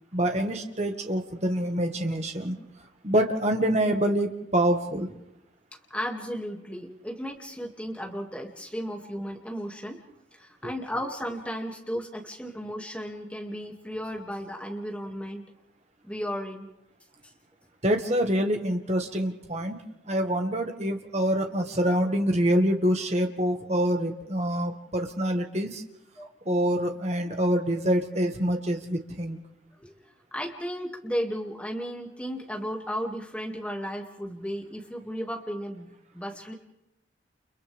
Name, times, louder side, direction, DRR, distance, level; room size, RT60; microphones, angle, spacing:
voice 1, 0.1-2.6 3.0-5.1 10.6-10.7 17.8-19.8 20.1-25.8 26.5-29.4, equal, 35° right, 4 dB, 1.8 m, -26 dB
voice 2, 5.9-10.0 10.3-15.4 16.0-16.7 26.2-26.3 29.8-29.9 30.3-36.5, equal, 5° left, 0 dB, 2.3 m, -34 dB
30.0 x 29.5 x 3.5 m, 0.88 s
head